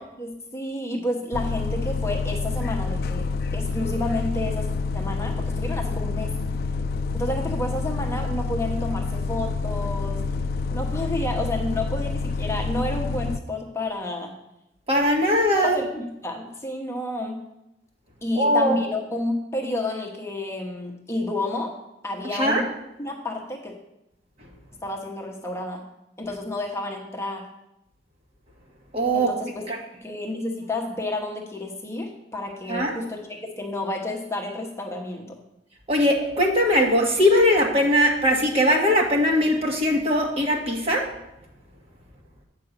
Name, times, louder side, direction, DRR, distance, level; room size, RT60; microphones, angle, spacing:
voice 1, 0.2-6.3 7.1-10.2 10.7-14.3 15.6-17.4 18.2-21.7 22.0-22.6 23.0-23.7 24.8-25.8 26.2-27.5 29.1-29.7 30.0-35.4, left 1 dB, 15° left, 0 dB, 0.9 m, -30 dB
Bus, 1.3-13.4, left 4 dB, 60° left, 0.3 m, -28 dB
voice 2, 14.9-15.8 18.3-18.8 22.3-22.6 28.9-29.3 29.7-29.8 32.7-32.9 35.9-41.0, equal, 35° right, 0 dB, 1.5 m, -20 dB
8.4 x 4.8 x 6.6 m, 0.88 s
head